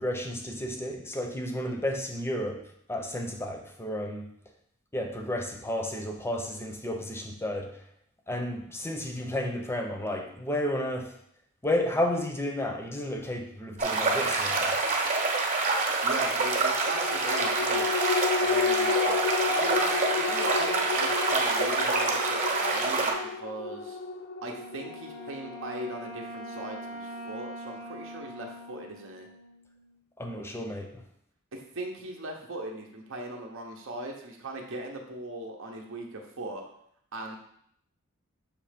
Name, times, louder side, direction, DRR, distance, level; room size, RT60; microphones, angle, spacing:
voice 1, 0.0-2.6 2.9-4.3 4.9-7.8 8.3-11.2 11.6-14.8 30.2-31.0, left 1 dB, 10° left, 3 dB, 0.7 m, -32 dB
sound 1, 13.8-23.1, right 3 dB, 40° right, 1.1 m, -27 dB
voice 2, 16.0-17.9 18.4-19.2 19.5-24.0 24.4-29.3 31.5-36.6 37.1-37.4, right 1 dB, 60° right, 1 dB, 0.8 m, -38 dB
sound 2, 16.8-27.6 28.0-28.1, left 5 dB, 50° left, 0.4 m, -32 dB
Wind instrument woodwind instrument, 24.5-30.0, equal, 85° left, 1.6 m, -43 dB
6.6 x 3.2 x 5.0 m, 0.68 s
head